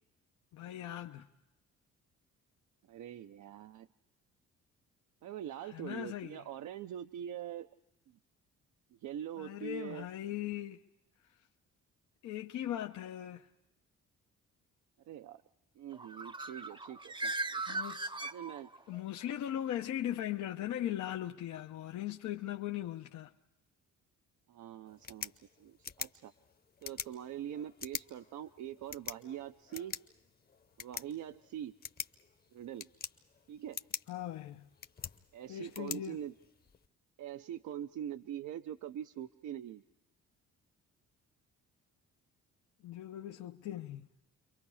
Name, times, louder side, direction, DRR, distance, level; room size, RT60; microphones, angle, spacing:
voice 1, 0.5-1.3 5.6-6.4 9.4-10.8 12.2-13.5 17.7-18.1 18.9-23.3 34.1-34.7 35.5-36.2 42.8-44.1, left 12 dB, 75° left, 0.9 m, -39 dB
voice 2, 2.9-3.9 5.2-7.7 8.1-8.2 9.0-10.1 15.0-15.4 15.8-17.8 18.2-18.7 24.5-26.3 26.8-30.0 30.8-31.7 32.5-32.9 33.5-33.8 35.3-36.3 37.2-39.8, right 10 dB, 75° right, 0.7 m, -43 dB
Bird, 15.9-19.0, right 2 dB, 15° right, 0.8 m, -39 dB
sound 1, 24.9-36.9, left 5 dB, 30° left, 0.9 m, -46 dB
29.5 x 23.5 x 4.8 m
cardioid pair, 90°, 30 cm